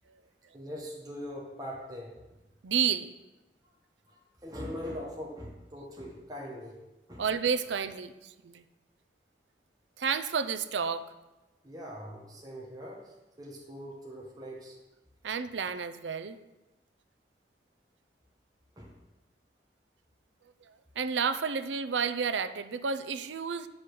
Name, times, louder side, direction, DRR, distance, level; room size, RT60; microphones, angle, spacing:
voice 1, 0.5-2.2 4.1-6.8 7.1-7.2 11.6-14.8 18.8-19.0, equal, 20° right, -3 dB, 1.2 m, -42 dB
voice 2, 2.6-3.1 7.2-8.6 10.0-11.1 15.2-16.4 20.7-23.7, right 6 dB, 90° right, 11 dB, 0.5 m, -31 dB
9.2 x 5.0 x 6.1 m, 1.0 s
head